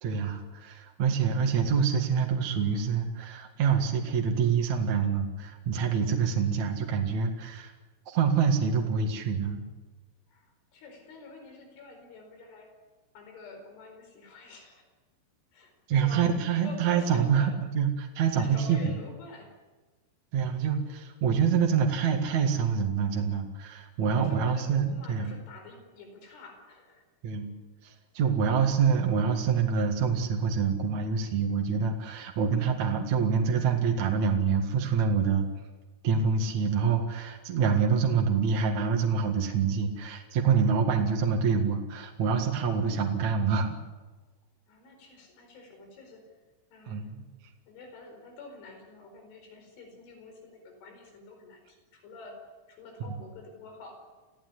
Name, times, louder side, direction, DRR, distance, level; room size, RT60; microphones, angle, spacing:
voice 1, 0.0-7.7 8.1-9.6 15.9-18.9 20.3-25.3 27.2-27.5 27.8-35.5 36.0-43.7 46.9-47.2, right 6 dB, 50° right, 1 dB, 2.5 m, -26 dB
voice 2, 10.3-12.8 13.2-14.8 15.5-16.2 16.6-17.6 18.4-19.6 24.1-27.1 44.7-46.3 46.7-47.1 47.7-52.4 52.7-54.0, left 3 dB, 85° left, 4 dB, 7.2 m, -48 dB
28.5 x 16.5 x 9.7 m, 1.3 s
omnidirectional pair, 5.4 m